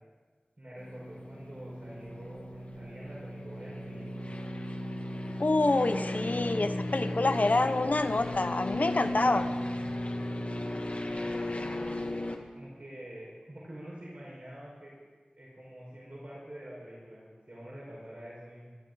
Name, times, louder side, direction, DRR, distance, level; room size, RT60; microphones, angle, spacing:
voice 1, 0.6-4.2 11.1-12.0 12.5-14.9 15.3-18.8, right 1 dB, 55° right, -6 dB, 5.0 m, -46 dB
sound 1, 0.8-12.4, left 1 dB, 50° left, 1.7 m, -36 dB
voice 2, 5.4-9.5, left 2 dB, 65° left, 8 dB, 0.9 m, -27 dB
26.0 x 12.5 x 4.0 m, 1.5 s
wide cardioid pair, 50°, 3 cm